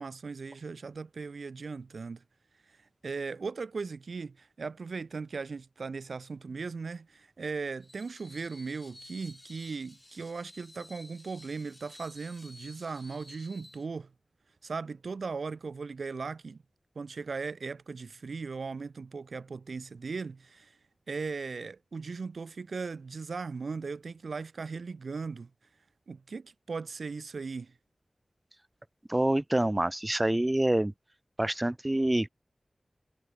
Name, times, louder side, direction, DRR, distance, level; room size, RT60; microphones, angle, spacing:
voice 1, 0.0-2.2 2.7-14.1 14.6-16.6 17.0-20.8 21.1-25.5 26.1-27.7, right 4 dB, 90° right, 0.7 m, -38 dB
Screech, 7.8-13.9, left 1 dB, 20° left, 2.7 m, -53 dB
voice 2, 29.1-30.9 31.4-32.3, right 1 dB, 20° right, 0.5 m, -26 dB
wide cardioid pair, 70°, 0 cm